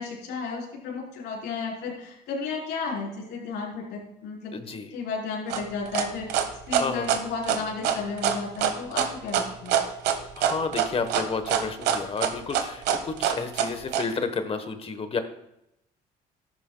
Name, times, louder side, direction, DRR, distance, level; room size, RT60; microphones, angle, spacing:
voice 1, 0.0-4.6 4.9-9.8, left 4 dB, 85° left, -2 dB, 4.0 m, -33 dB
voice 2, 4.5-4.9 6.8-7.2 10.4-15.2, left 4 dB, 35° left, 8 dB, 1.2 m, -31 dB
sound 1, 5.5-14.0, right 9 dB, 85° right, 1.2 m, -25 dB
13.5 x 11.5 x 2.3 m, 0.83 s
cardioid pair, 110°, 17 cm